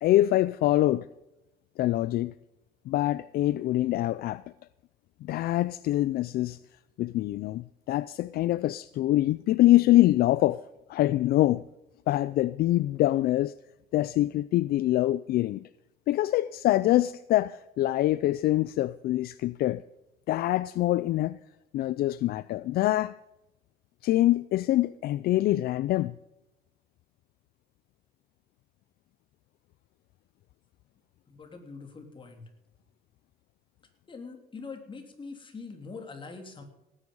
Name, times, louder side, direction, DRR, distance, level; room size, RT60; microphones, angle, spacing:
voice 1, 0.0-1.1 1.8-2.3 2.9-4.4 5.2-6.6 7.0-10.6 10.9-11.6 12.1-13.5 13.9-15.6 16.1-19.8 20.3-21.4 21.7-23.1 24.0-26.1, left 15 dB, 65° left, 0.4 m, -24 dB
voice 2, 31.3-32.5 34.1-36.6, left 4 dB, 30° left, 3.3 m, -43 dB
18.0 x 9.9 x 5.4 m
cardioid pair, 110°, 17 cm